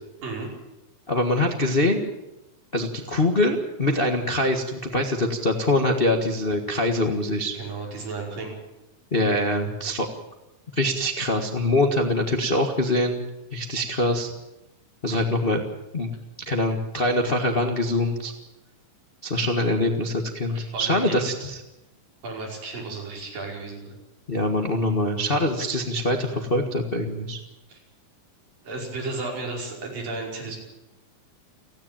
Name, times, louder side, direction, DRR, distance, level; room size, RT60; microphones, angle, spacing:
voice 1, 1.1-2.1 2.7-7.6 9.1-10.1 10.7-13.2 13.5-14.3 15.0-15.6 15.9-16.1 16.4-18.3 19.2-21.6 24.3-27.4, left 1 dB, 55° left, 3 dB, 0.6 m, -24 dB
voice 2, 7.5-8.6 20.5-21.3 22.2-24.0 27.7-27.8 28.6-30.6, right 3 dB, 70° right, -1 dB, 7.0 m, -33 dB
30.0 x 10.5 x 8.9 m, 0.95 s
omnidirectional pair, 4.1 m